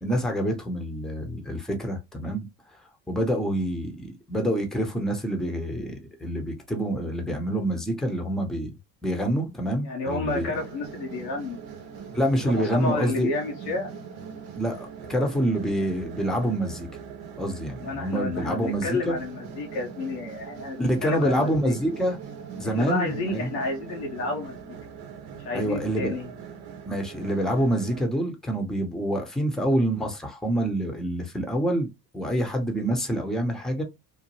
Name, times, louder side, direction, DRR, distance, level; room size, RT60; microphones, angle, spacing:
voice 1, 0.0-2.5 2.7-2.8 3.1-8.7 9.0-10.5 12.1-13.4 14.6-16.9 17.4-19.2 20.8-22.2 22.6-23.5 25.5-26.1 26.9-33.8, right 1 dB, ahead, 0.8 m, -27 dB
voice 2, 9.8-11.6 12.5-13.9 17.8-21.7 22.7-24.8 25.4-26.3, left 3 dB, 85° left, 1.2 m, -31 dB
sound 1, 10.3-28.0, right 7 dB, 55° right, 0.8 m, -41 dB
2.9 x 2.1 x 3.0 m
hypercardioid pair, 65°, 47 cm